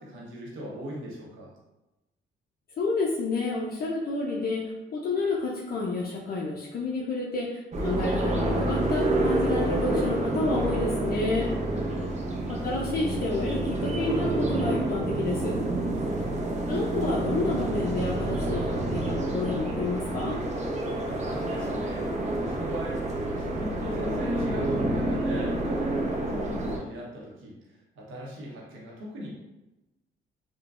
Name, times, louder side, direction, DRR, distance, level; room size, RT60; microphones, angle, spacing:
voice 1, 0.0-1.5 11.7-12.2 15.9-16.3 21.0-29.3, equal, 85° right, -3 dB, 0.9 m, -39 dB
voice 2, 2.8-11.5 12.5-15.6 16.7-20.4, left 3 dB, 50° left, -3 dB, 0.5 m, -30 dB
sound 1, 7.7-26.8, right 1 dB, 35° right, 0.6 m, -28 dB
3.7 x 2.2 x 2.4 m, 1.0 s
cardioid pair, 90°, 20 cm